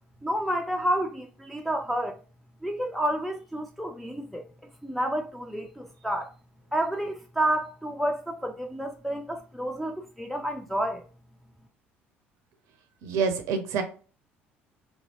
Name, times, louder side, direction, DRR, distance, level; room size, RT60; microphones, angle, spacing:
voice 1, 0.2-2.2 2.6-4.5 4.8-6.3 6.7-11.1, right 1 dB, ahead, 0.4 m, -30 dB
voice 2, 13.0-13.8, right 5 dB, 55° right, 0.5 m, -27 dB
2.8 x 2.7 x 2.6 m
figure-of-eight pair, 55°, 6 cm